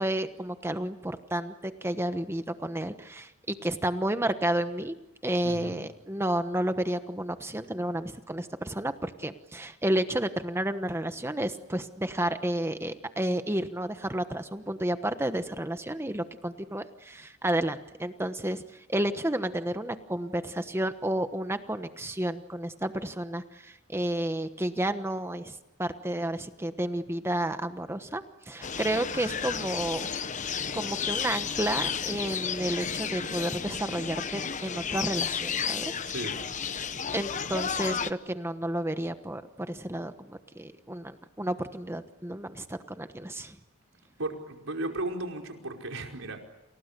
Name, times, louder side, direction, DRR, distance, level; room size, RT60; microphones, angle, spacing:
voice 1, 0.0-4.9 5.2-30.1 30.7-35.9 37.1-43.5, right 1 dB, 10° right, 9 dB, 1.2 m, -31 dB
voice 2, 5.4-5.8 36.1-36.4 44.2-46.4, right 2 dB, 75° right, 2 dB, 5.2 m, -35 dB
sound 1, 28.6-38.1, left 7 dB, 35° left, 1.0 m, -32 dB
30.0 x 28.5 x 6.9 m, 0.94 s
head